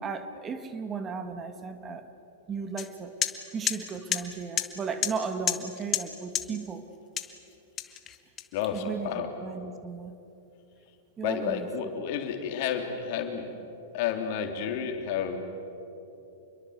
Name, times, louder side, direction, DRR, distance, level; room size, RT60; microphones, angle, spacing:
voice 1, 0.0-2.0 2.5-3.2 3.5-6.8 8.7-10.1 11.2-11.7, right 5 dB, 25° right, 9 dB, 2.0 m, -35 dB
sound 1, 2.8-2.9 3.2-3.3 3.7-3.8 4.1-4.2 4.6-4.7 5.0-5.1 5.5-5.6 5.9-6.0 6.3-6.4 7.2-7.3 7.8-8.8, left 10 dB, 30° left, 1.8 m, -29 dB
voice 2, 8.5-9.3 11.2-13.5 13.9-15.4, left 8 dB, 55° left, 5 dB, 3.4 m, -31 dB
27.5 x 22.5 x 8.1 m, 2.9 s
hypercardioid pair, 110°, 0 cm